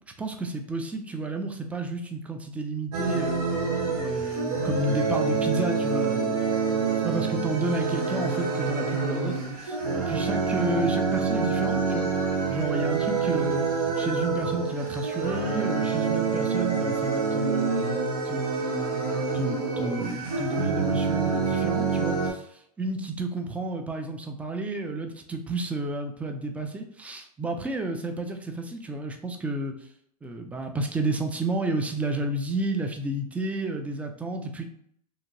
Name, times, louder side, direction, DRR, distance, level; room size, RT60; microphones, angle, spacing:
voice 1, 0.2-3.5 4.0-6.6 7.0-12.1 12.5-13.7 14.0-17.7 18.2-29.7 30.2-34.6, right 2 dB, 5° right, 4 dB, 0.3 m, -31 dB
sound 1, 2.9-22.3, right 4 dB, 75° right, 1.0 m, -27 dB
2.7 x 2.7 x 2.6 m, 0.67 s
hypercardioid pair, 110°, 20 cm